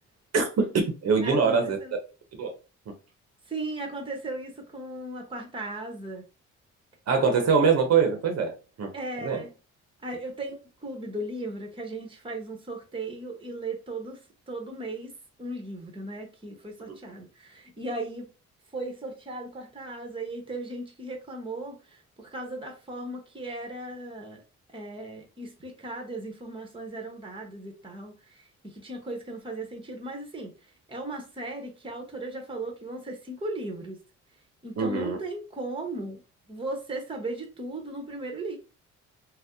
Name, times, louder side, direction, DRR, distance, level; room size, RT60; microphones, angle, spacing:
voice 1, 0.3-1.8 2.4-2.5 7.1-8.9 9.2-9.4 16.9-17.0 34.8-35.2, right 5 dB, 55° right, 0.8 m, -23 dB
voice 2, 1.2-1.9 3.5-6.2 8.9-9.5 10.0-14.2 14.5-15.1 15.4-18.3 18.7-24.4 24.7-34.0 34.6-36.2 36.5-38.6, right 2 dB, 15° right, 0.9 m, -37 dB
2.7 x 2.1 x 3.5 m
cardioid pair, 90°, 30 cm